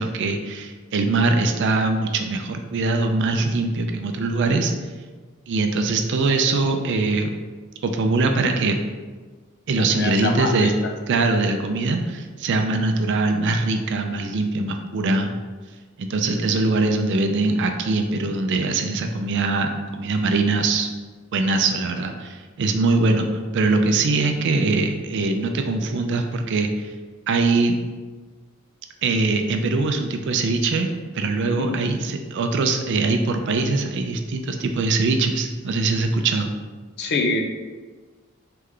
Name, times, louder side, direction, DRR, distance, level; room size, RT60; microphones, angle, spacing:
voice 1, 0.0-4.7 5.5-7.4 7.8-8.8 9.7-10.7 11.1-15.3 16.0-20.9 21.3-23.3 23.5-26.9 27.3-27.7 29.0-30.9 31.1-36.5, right 3 dB, 60° right, 5 dB, 0.4 m, -22 dB
voice 2, 9.7-10.7 31.4-31.8 37.0-37.4, left 3 dB, 50° left, 2 dB, 0.5 m, -25 dB
3.3 x 3.2 x 3.7 m, 1.4 s
head